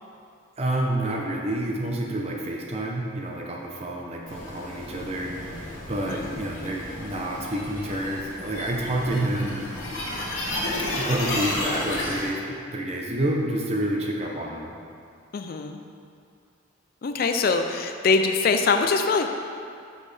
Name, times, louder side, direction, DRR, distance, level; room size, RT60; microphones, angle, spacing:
voice 1, 0.6-9.7 10.0-10.3 10.9-14.8, right 1 dB, 30° right, -1 dB, 0.6 m, -29 dB
sound 1, 4.3-12.3, left 1 dB, 80° left, 1.2 m, -32 dB
voice 2, 6.1-6.4 15.3-15.8 17.0-19.3, left 4 dB, 45° left, 6 dB, 0.3 m, -23 dB
6.2 x 5.3 x 3.3 m, 2.4 s
head